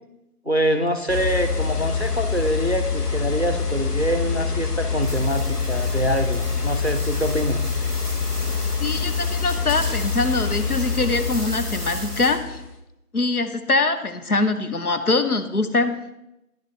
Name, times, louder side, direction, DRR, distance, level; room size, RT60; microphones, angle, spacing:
voice 1, 0.5-7.6, equal, 45° right, 7 dB, 0.5 m, -25 dB
sound 1, 1.1-12.7, left 5 dB, 90° left, 1.2 m, -26 dB
sound 2, 5.0-12.6, equal, 40° left, 1.4 m, -38 dB
voice 2, 8.8-12.6 13.1-16.1, left 3 dB, 75° left, 8 dB, 0.8 m, -23 dB
9.9 x 6.1 x 3.3 m, 0.89 s
figure-of-eight pair, 175°, 45 cm